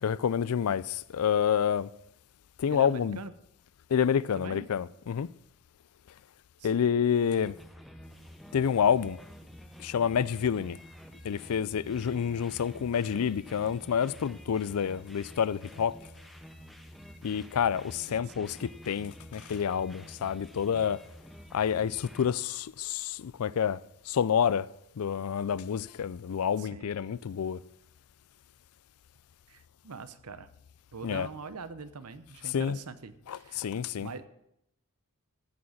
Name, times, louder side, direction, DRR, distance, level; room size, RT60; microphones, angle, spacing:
voice 1, 0.0-1.9 2.6-3.2 3.9-5.3 6.6-7.6 8.5-9.2 9.8-10.8 11.2-16.0 17.2-21.0 21.5-23.8 24.1-24.7 25.0-27.6 31.0-31.3 32.4-32.8 33.3-34.1, left 7 dB, 80° left, 0.4 m, -28 dB
voice 2, 2.7-3.3 4.3-4.7 6.6-7.0 18.0-18.4 26.6-26.9 29.5-30.5 30.9-33.7 34.0-34.3, right 4 dB, 90° right, 0.8 m, -43 dB
sound 1, 7.4-22.3, equal, ahead, 0.6 m, -50 dB
14.0 x 6.4 x 7.2 m
head